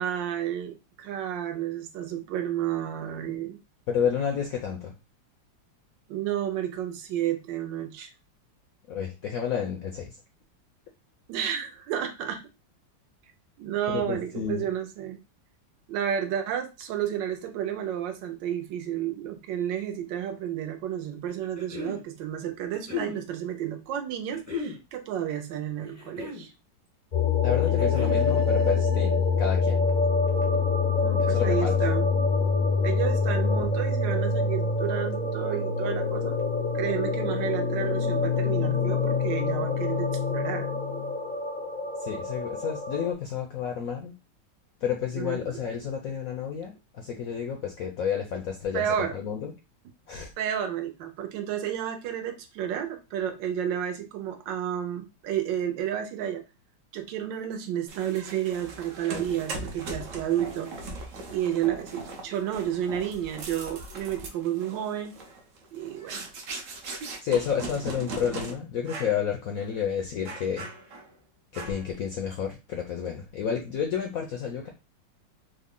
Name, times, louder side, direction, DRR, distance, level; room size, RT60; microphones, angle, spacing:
voice 1, 0.0-3.6 6.1-8.1 11.3-12.5 13.6-15.2 15.9-26.5 30.9-32.1 32.8-36.4 36.7-40.7 45.2-45.6 48.7-49.1 50.4-56.4 56.9-60.7 61.3-65.2 65.7-66.2, right 10 dB, 80° right, 6 dB, 1.3 m, -31 dB
voice 2, 3.9-4.9 8.9-10.2 13.9-14.7 27.4-29.8 31.2-31.7 42.0-44.1 44.8-49.5 50.1-50.3 67.2-70.7 71.5-74.7, left 7 dB, 75° left, 2 dB, 0.8 m, -30 dB
sound 1, 21.3-22.0 22.7-23.2 24.3-24.8 25.8-26.5 27.6-28.3, left 5 dB, 15° right, 0.6 m, -35 dB
sound 2, 27.1-43.1, left 4 dB, 50° left, 0.5 m, -25 dB
sound 3, 57.9-68.5 68.9-69.2 69.6-69.7 70.3-71.1 71.5-72.0, right 2 dB, 60° right, 0.9 m, -39 dB
3.7 x 2.1 x 3.6 m, 0.27 s
omnidirectional pair, 2.0 m